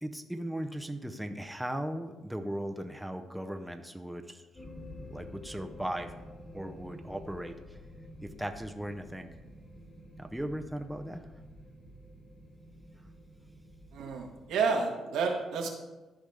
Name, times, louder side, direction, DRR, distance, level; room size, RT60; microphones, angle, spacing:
voice 1, 0.0-4.6 5.0-6.1 6.5-7.8 8.2-9.3 10.2-11.3, right 1 dB, 5° right, 5 dB, 0.7 m, -38 dB
sound 1, 4.5-14.5, left 1 dB, 40° left, 2.8 m, -50 dB
voice 2, 13.9-15.7, right 5 dB, 85° right, 0 dB, 1.5 m, -30 dB
13.5 x 5.1 x 3.4 m, 1.1 s
cardioid pair, 90°, 0 cm